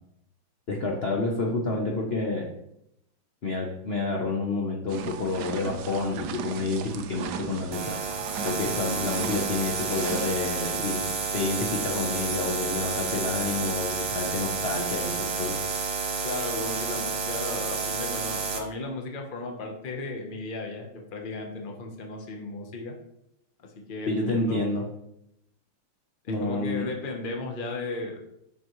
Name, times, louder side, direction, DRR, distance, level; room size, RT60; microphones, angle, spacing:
voice 1, 0.7-2.5 3.4-8.0 8.4-15.6 24.1-24.8 26.3-26.8, left 3 dB, 85° left, -1 dB, 0.5 m, -29 dB
sound 1, 4.9-10.8, right 7 dB, 80° right, 0.9 m, -38 dB
sound 2, 7.7-18.6, right 5 dB, 65° right, 1.5 m, -30 dB
voice 2, 16.2-23.0 23.8-24.7 26.2-28.2, left 3 dB, 45° left, 2 dB, 0.7 m, -35 dB
7.4 x 6.0 x 3.1 m, 0.81 s
omnidirectional pair, 2.3 m